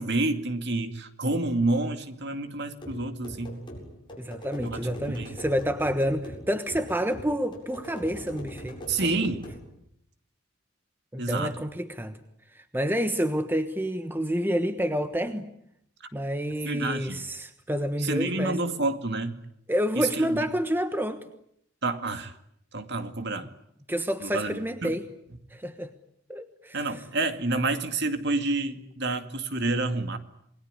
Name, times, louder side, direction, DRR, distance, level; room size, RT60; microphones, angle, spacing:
voice 1, 0.0-3.6 4.6-4.8 5.1-5.3 8.9-9.4 11.2-11.5 16.6-17.2 18.0-19.3 20.0-20.5 21.8-22.3 22.7-23.5 24.2-24.9 26.7-30.2, right 2 dB, 50° right, 8 dB, 2.3 m, -28 dB
sound 1, 2.8-9.6, equal, 20° left, 7.8 m, -42 dB
voice 2, 4.2-9.1 11.1-12.2 12.5-15.5 16.1-18.6 19.7-21.2 23.9-25.1 25.5-25.9 26.3-27.0, equal, 10° right, 9 dB, 1.2 m, -29 dB
28.0 x 21.0 x 9.9 m, 0.74 s
head